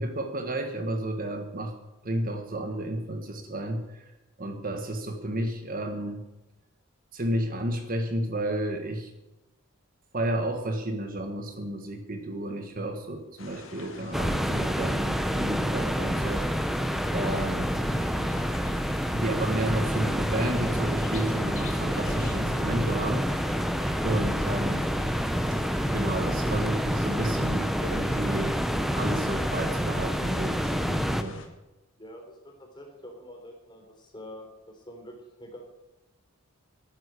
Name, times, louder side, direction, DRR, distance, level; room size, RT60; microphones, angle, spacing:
voice 1, 0.0-1.7 2.0-4.1 4.4-6.2 7.1-9.1 10.1-16.5 17.1-17.7 19.1-23.6 24.0-24.9 25.9-28.6 28.9-31.4, right 1 dB, 40° right, 5 dB, 1.4 m, -32 dB
sound 1, 13.4-31.5, left 3 dB, 60° left, 2.3 m, -46 dB
sound 2, 14.1-31.2, equal, ahead, 0.6 m, -28 dB
voice 2, 32.0-35.7, equal, 20° left, 1 dB, 3.6 m, -46 dB
12.5 x 10.0 x 8.5 m, 1.0 s
head